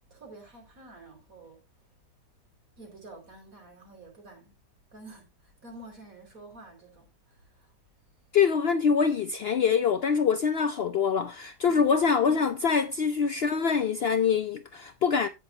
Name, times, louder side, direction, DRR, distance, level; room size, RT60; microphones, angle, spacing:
voice 1, 0.1-1.6 2.8-4.5 4.9-7.7 11.7-12.0, right 2 dB, 55° right, 4.7 m, -49 dB
voice 2, 8.3-15.3, left 6 dB, 80° left, 0.5 m, -24 dB
17.5 x 6.1 x 2.8 m
omnidirectional pair, 1.8 m